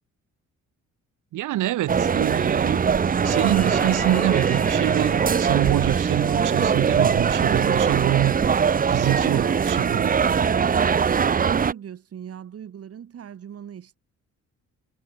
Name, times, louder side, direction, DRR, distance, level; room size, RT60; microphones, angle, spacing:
voice 1, 1.3-8.4 8.9-10.2, right 14 dB, 85° right, 2.4 m, -25 dB
sound 1, 1.9-11.7, right 6 dB, 30° right, 0.7 m, -21 dB
sound 2, 3.2-7.3 7.6-7.7, equal, 5° left, 1.5 m, -37 dB
voice 2, 11.4-14.0, right 9 dB, 50° right, 1.9 m, -39 dB
cardioid pair, 90°, 30 cm